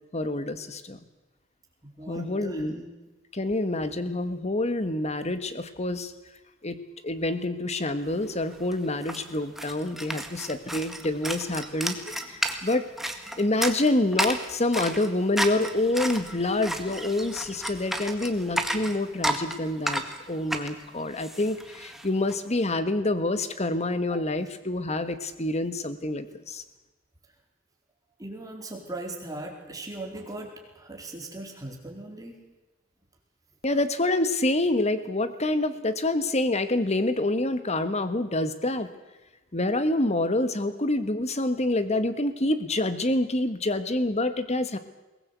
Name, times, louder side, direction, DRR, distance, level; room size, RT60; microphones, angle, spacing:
voice 1, 0.1-1.0 2.1-2.8 3.3-6.1 6.6-12.9 13.4-26.6 33.6-38.9 39.5-44.8, left 2 dB, 35° left, 11 dB, 1.5 m, -27 dB
voice 2, 1.8-2.9 24.1-24.2 28.2-32.4, right 2 dB, 20° right, 1 dB, 4.3 m, -39 dB
sound 1, 8.2-8.3 8.5-22.4, right 1 dB, ahead, 1.7 m, -33 dB
22.0 x 19.0 x 8.3 m, 1.1 s
head